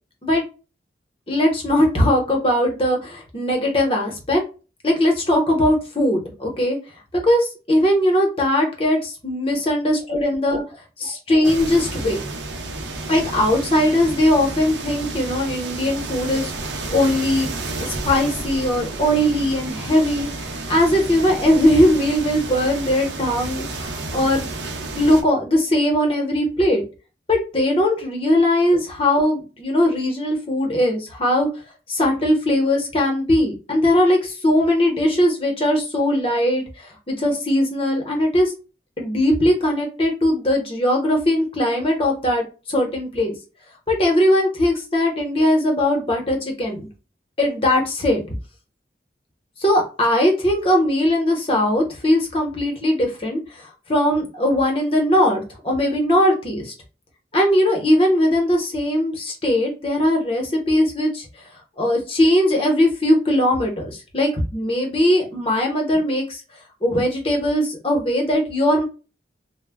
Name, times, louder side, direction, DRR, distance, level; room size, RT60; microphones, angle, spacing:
voice 1, 1.3-4.4 4.8-6.8 7.1-10.6 11.0-12.2 13.1-16.5 16.9-24.5 24.9-26.8 27.3-31.5 31.9-36.6 37.1-38.5 39.0-42.4 42.7-43.3 43.9-46.9 47.4-48.2 49.6-53.6 53.9-56.7 57.3-61.3 61.8-66.4 66.8-68.8, left 1 dB, 30° left, 1 dB, 0.8 m, -19 dB
sound 1, 11.4-25.2, right 2 dB, 80° right, 0.6 m, -31 dB
2.1 x 2.0 x 3.4 m, 0.32 s
head